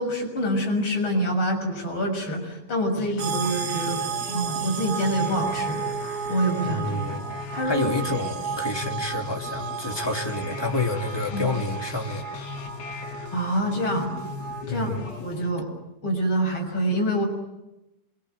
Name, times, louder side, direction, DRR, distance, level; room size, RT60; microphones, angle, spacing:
voice 1, 0.0-5.8 6.3-7.2 7.5-7.9 11.3-11.5 13.3-14.1 14.7-15.7 16.0-17.3, equal, 30° left, 1 dB, 7.4 m, -26 dB
sound 1, 3.0-15.5, left 5 dB, 75° left, 4.1 m, -38 dB
sound 2, 3.2-14.6, right 8 dB, 65° right, 2.3 m, -33 dB
voice 2, 6.6-7.2 7.6-12.2 14.6-15.1, left 2 dB, 10° left, 1 dB, 2.0 m, -29 dB
27.5 x 24.5 x 8.1 m, 0.95 s
omnidirectional pair, 4.3 m